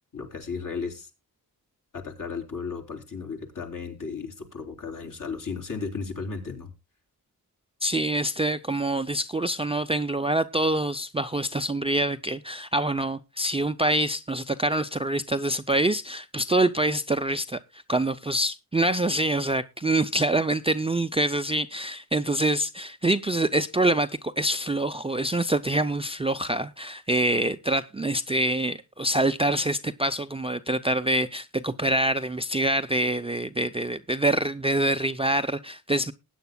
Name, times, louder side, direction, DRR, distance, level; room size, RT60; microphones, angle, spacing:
voice 1, 0.1-1.1 1.9-6.7, left 5 dB, 55° left, 3.5 m, -35 dB
voice 2, 7.8-36.1, right 1 dB, 15° right, 0.5 m, -25 dB
20.0 x 9.2 x 2.2 m
wide cardioid pair, 105°, 38 cm